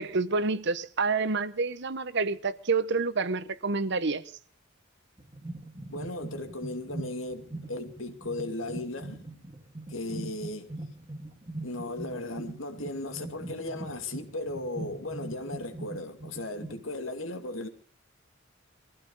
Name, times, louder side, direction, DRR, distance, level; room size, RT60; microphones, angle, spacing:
voice 1, 0.0-4.2, right 4 dB, 60° right, 1.0 m, -28 dB
sound 1, 5.2-16.8, right 2 dB, 25° right, 1.9 m, -42 dB
voice 2, 5.9-9.4 9.9-10.7 11.6-17.7, left 2 dB, 85° left, 2.4 m, -36 dB
22.5 x 15.5 x 4.0 m
head